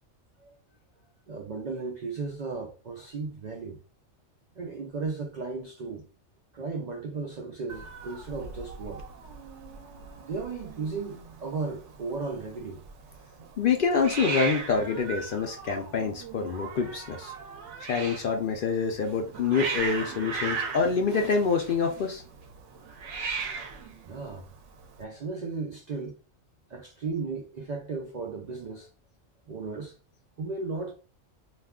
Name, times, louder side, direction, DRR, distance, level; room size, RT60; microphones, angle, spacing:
voice 1, 1.3-3.8 4.6-6.1 6.5-9.0 10.2-12.8 23.4-23.6 24.0-24.5 25.0-26.1 26.7-28.9 29.5-30.0 30.4-31.0, right 4 dB, 90° right, 0.3 m, -35 dB
Hiss, 7.7-25.0, right 4 dB, 75° right, 0.9 m, -38 dB
voice 2, 13.6-17.3 17.9-22.2, left 5 dB, 60° left, 0.5 m, -26 dB
2.4 x 2.3 x 3.4 m
omnidirectional pair, 1.3 m